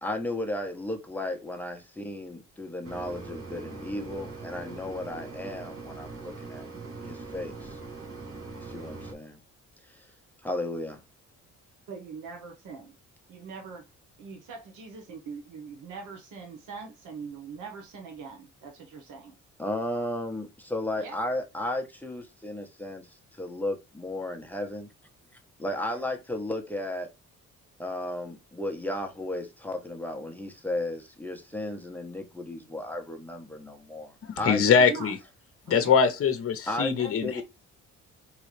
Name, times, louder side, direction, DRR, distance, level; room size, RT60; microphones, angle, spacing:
voice 1, 0.0-6.7 7.0-7.8 8.5-9.4 9.9-10.0 10.4-11.0 19.6-24.9 25.6-27.1 27.8-35.0 36.7-36.9 37.2-37.4, left 1 dB, 5° left, 0.9 m, -34 dB
Mechanisms, 2.8-9.1, right 3 dB, 50° right, 1.4 m, -41 dB
voice 2, 11.9-12.9 13.3-13.9 14.2-19.3 21.0-21.2 34.6-35.1 35.7-36.0 36.8-37.1, right 5 dB, 85° right, 1.3 m, -42 dB
voice 3, 34.2-35.2 35.7-37.4, left 6 dB, 50° left, 0.9 m, -23 dB
3.9 x 3.2 x 3.2 m
cardioid pair, 90°, 30 cm